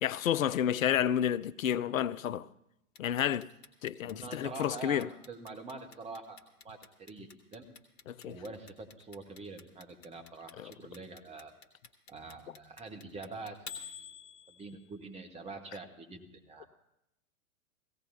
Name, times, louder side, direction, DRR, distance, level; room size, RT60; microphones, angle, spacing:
voice 1, 0.0-2.5 3.0-3.5 3.8-5.1 8.1-8.4 10.6-10.7, left 10 dB, 70° left, 0.5 m, -30 dB
Clock, 3.0-14.9, left 6 dB, 50° left, 1.7 m, -49 dB
voice 2, 4.0-6.4 6.6-7.7 8.2-11.5 12.1-13.8 14.5-16.7, right 3 dB, 15° right, 1.4 m, -45 dB
17.5 x 16.5 x 2.8 m
figure-of-eight pair, 100°, 42 cm